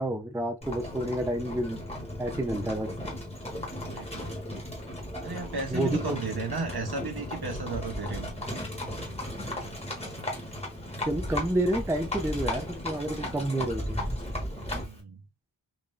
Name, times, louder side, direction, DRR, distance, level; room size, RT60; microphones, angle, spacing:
voice 1, 0.0-1.8 2.2-2.9 5.7-6.2 11.1-14.0, right 1 dB, 5° right, 0.4 m, -29 dB
Livestock farm animals working animals, 0.6-15.0, left 1 dB, 15° left, 1.3 m, -35 dB
voice 2, 3.9-4.3 5.2-8.3 9.4-9.7 10.1-10.2 14.8-15.2, right 3 dB, 50° right, 1.1 m, -35 dB
3.8 x 2.6 x 3.1 m
wide cardioid pair, 55°, 48 cm